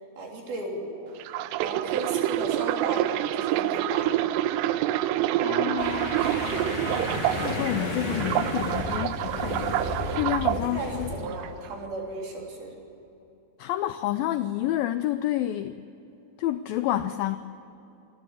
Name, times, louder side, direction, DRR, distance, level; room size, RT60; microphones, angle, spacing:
voice 1, 0.2-1.1 1.6-4.1 7.8-7.9 10.4-12.7, right 2 dB, 65° right, 0 dB, 5.0 m, -35 dB
sound 1, 1.2-7.7 8.1-10.6 11.2-11.5, right 13 dB, 85° right, 2.8 m, -27 dB
voice 2, 5.4-6.6 7.4-11.1 13.6-15.7 16.4-17.4, left 13 dB, 90° left, 11 dB, 2.0 m, -29 dB
sound 2, 5.8-11.2, left 1 dB, 20° left, 5.8 m, -32 dB
26.5 x 12.5 x 9.1 m, 2.9 s
omnidirectional pair, 4.8 m